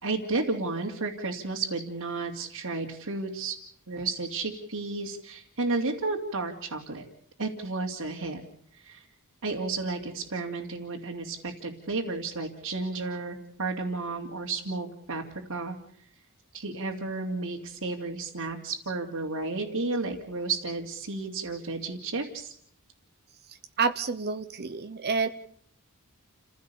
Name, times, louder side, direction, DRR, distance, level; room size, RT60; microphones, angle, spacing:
voice 1, 0.0-3.6 3.9-7.0 7.4-8.4 8.7-9.1 9.4-15.2 15.5-15.8 16.5-22.5, right 3 dB, 75° right, -2 dB, 2.6 m, -32 dB
voice 2, 23.8-25.3, right 5 dB, 50° right, 9 dB, 0.9 m, -28 dB
29.5 x 16.0 x 7.0 m, 0.66 s
head